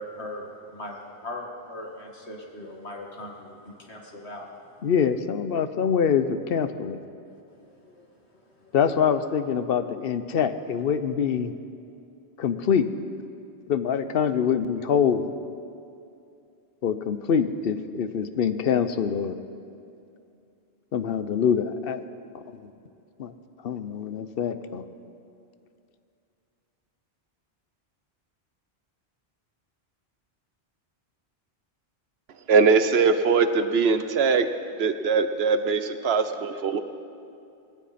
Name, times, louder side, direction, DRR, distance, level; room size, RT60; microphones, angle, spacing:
voice 1, 0.0-4.5 7.6-8.1 8.3-8.7, left 1 dB, 85° left, 0 dB, 2.1 m, -40 dB
voice 2, 4.8-7.0 8.7-11.5 12.4-12.9 13.7-15.3 16.8-19.4 20.9-22.0 22.3-22.7 23.2-23.3 23.6-24.8, left 7 dB, 65° left, 11 dB, 0.9 m, -25 dB
voice 3, 32.5-34.5 34.8-36.8, right 5 dB, 75° right, 10 dB, 1.0 m, -21 dB
19.0 x 17.0 x 4.3 m, 2.6 s
omnidirectional pair, 1.1 m